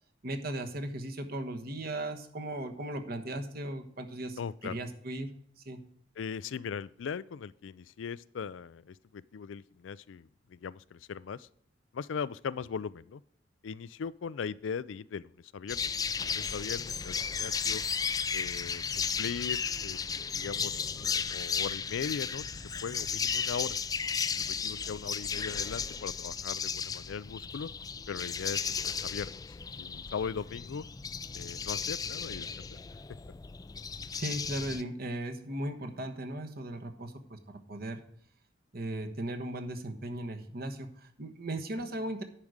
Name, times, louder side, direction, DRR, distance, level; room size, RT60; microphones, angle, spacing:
voice 1, 0.2-5.3 5.6-5.8 34.1-37.4 37.7-38.0 38.7-42.2, right 1 dB, 55° right, 6 dB, 1.2 m, -37 dB
voice 2, 4.4-4.8 6.2-11.5 11.9-13.2 13.6-15.9 16.2-17.8 18.3-20.0 20.3-23.7 24.4-27.7 28.1-30.8 31.3-32.8, left 6 dB, 85° left, 18 dB, 0.4 m, -39 dB
sound 1, 15.7-34.8, left 6 dB, 20° left, 0.3 m, -34 dB
10.5 x 5.0 x 8.1 m, 0.62 s
head